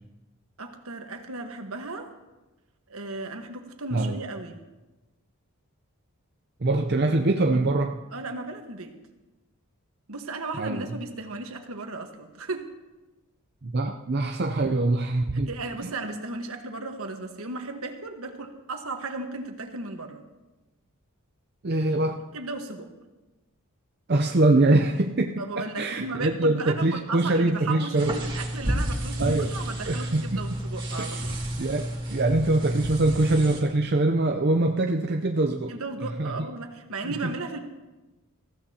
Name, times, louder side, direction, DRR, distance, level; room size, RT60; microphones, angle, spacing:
voice 1, 0.6-2.1 2.9-4.6 8.1-8.9 10.1-12.7 15.5-20.2 22.3-22.9 25.4-31.4 35.7-37.6, right 3 dB, 75° right, 4 dB, 1.4 m, -35 dB
voice 2, 6.6-8.0 10.6-10.9 13.6-15.5 15.8-15.9 21.6-22.2 24.1-28.2 29.2-29.5 29.9-30.4 31.0-31.1 31.6-35.7 36.0-36.3 37.0-37.4, right 2 dB, 45° right, 3 dB, 0.6 m, -24 dB
sound 1, 27.9-33.6, right 1 dB, 20° right, 2.2 m, -31 dB
20.0 x 15.0 x 2.9 m, 1.1 s
head